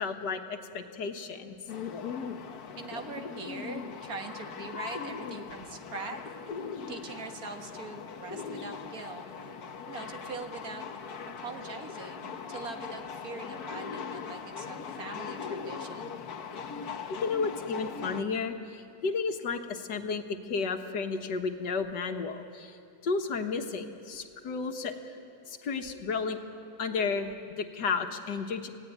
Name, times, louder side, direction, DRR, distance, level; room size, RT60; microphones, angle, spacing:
voice 1, 0.0-1.6 17.2-20.2 20.5-22.7 23.0-24.9 25.6-26.4 26.8-28.7, left 4 dB, 85° left, 5 dB, 2.0 m, -32 dB
sound 1, 1.7-18.2, left 6 dB, 65° left, 1.6 m, -40 dB
voice 2, 2.8-6.2 6.9-9.2 9.9-10.8 11.4-16.2, right 4 dB, 60° right, 5 dB, 2.0 m, -42 dB
28.0 x 17.0 x 9.4 m, 2.5 s
omnidirectional pair, 1.8 m